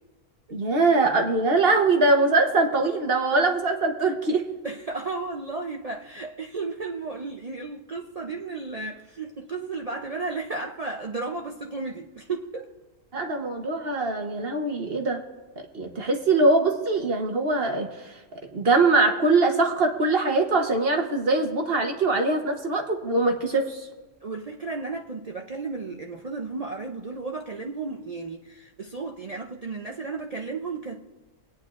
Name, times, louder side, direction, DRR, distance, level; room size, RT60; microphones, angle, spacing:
voice 1, 0.5-4.5 13.1-15.3 15.7-17.9 18.5-23.9, right 3 dB, 45° right, 1.2 m, -22 dB
voice 2, 4.6-12.7 24.2-31.0, right 3 dB, 80° right, 0.3 m, -34 dB
25.0 x 9.4 x 2.5 m
omnidirectional pair, 1.6 m